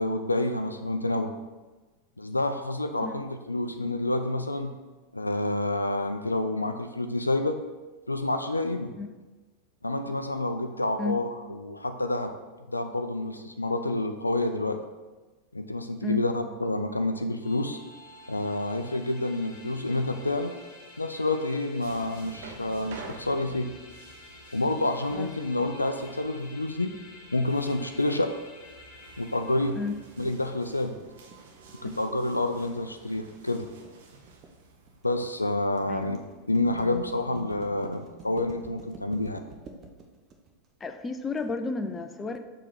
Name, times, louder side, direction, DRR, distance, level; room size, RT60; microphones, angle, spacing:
voice 1, 0.0-1.3 2.2-4.7 5.1-7.6 8.1-8.9 9.8-12.3 12.7-14.8 15.5-17.8 18.3-20.5 21.0-23.7 24.5-26.9 27.3-28.3 29.2-29.8 30.2-31.0 31.8-33.7 35.0-36.2 36.5-39.4, left 2 dB, 85° left, 7 dB, 0.4 m, -28 dB
sound 1, 17.4-30.5, left 2 dB, 50° left, 1.2 m, -50 dB
sound 2, 21.8-37.1, right 3 dB, 55° right, 0.9 m, -50 dB
sound 3, 29.9-41.4, right 4 dB, 30° right, 0.8 m, -49 dB
voice 2, 40.8-42.4, left 3 dB, 15° left, 8 dB, 0.5 m, -32 dB
6.6 x 3.2 x 5.4 m, 1.2 s
figure-of-eight pair, 90°, 0 cm